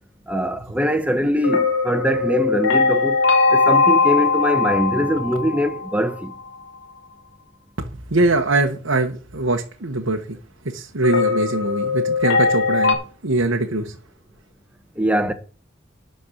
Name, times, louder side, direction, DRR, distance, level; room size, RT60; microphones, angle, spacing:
voice 1, 0.3-3.2 3.5-6.3 15.0-15.3, equal, 5° right, 1.1 m, -22 dB
sound 1, 1.4-6.3 11.0-12.9, left 4 dB, 60° left, 2.7 m, -20 dB
voice 2, 7.8-10.4 10.7-13.0 13.2-13.9, right 2 dB, 80° right, 1.2 m, -22 dB
12.0 x 4.6 x 8.3 m
head